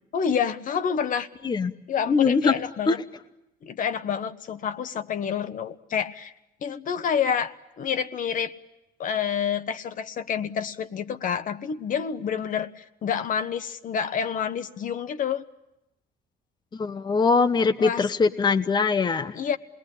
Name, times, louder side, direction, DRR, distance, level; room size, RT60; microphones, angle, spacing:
voice 1, 0.1-1.3 1.9-3.0 3.6-6.3 6.6-8.5 9.0-15.4 17.8-18.1 19.3-19.6, left 7 dB, 50° left, 10 dB, 1.2 m, -28 dB
voice 2, 2.1-2.6 2.9-3.0 16.7-19.4, left 4 dB, 25° left, 9 dB, 0.9 m, -22 dB
27.0 x 20.5 x 9.9 m, 0.91 s
cardioid pair, 110°, 17 cm